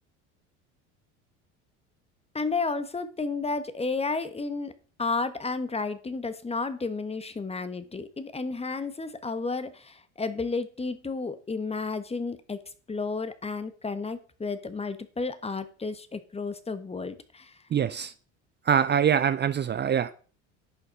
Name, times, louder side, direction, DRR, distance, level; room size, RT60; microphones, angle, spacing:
voice 1, 2.3-12.6 12.9-17.6, left 4 dB, 15° left, 1.4 m, -32 dB
voice 2, 17.7-18.1 18.6-20.1, right 8 dB, 30° right, 0.7 m, -24 dB
11.0 x 6.7 x 5.3 m
hypercardioid pair, 75°, 35 cm